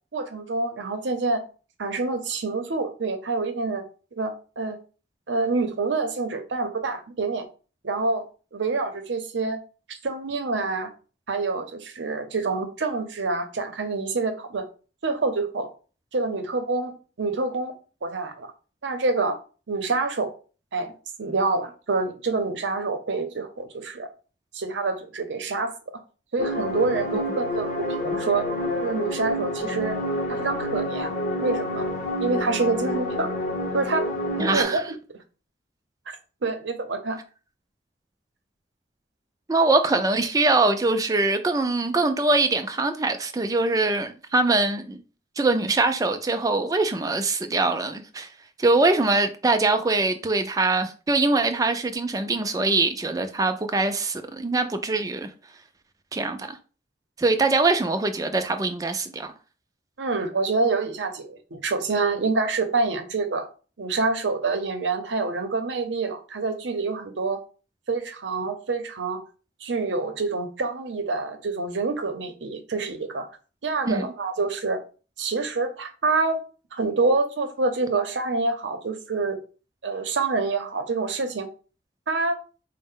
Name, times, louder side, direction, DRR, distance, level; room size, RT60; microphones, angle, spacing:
voice 1, 0.1-1.4 1.8-3.8 4.1-4.8 5.3-7.5 7.8-8.2 8.5-9.6 9.9-10.9 11.3-14.6 15.0-15.7 16.1-16.9 17.2-17.7 18.0-18.5 18.8-19.4 19.7-20.3 20.7-20.9 21.2-24.1 24.5-25.8 26.3-28.5 28.8-30.0 30.3-31.1 31.4-31.9 32.2-33.3 33.7-34.0 34.4-34.8 36.1-36.2 36.4-37.2 60.0-63.5 63.8-67.4 67.9-69.2 69.6-73.3 73.6-74.8 75.2-76.4 76.7-79.4 79.8-81.5 82.1-82.4, right 3 dB, 85° right, 0.7 m, -26 dB
sound 1, 26.4-34.6, left 1 dB, 45° left, 0.7 m, -28 dB
voice 2, 34.4-34.8 39.5-45.0 45.4-48.3 48.6-55.3 56.1-56.6 57.2-59.3 73.8-74.1, right 3 dB, 20° right, 0.3 m, -23 dB
4.2 x 2.1 x 3.6 m
head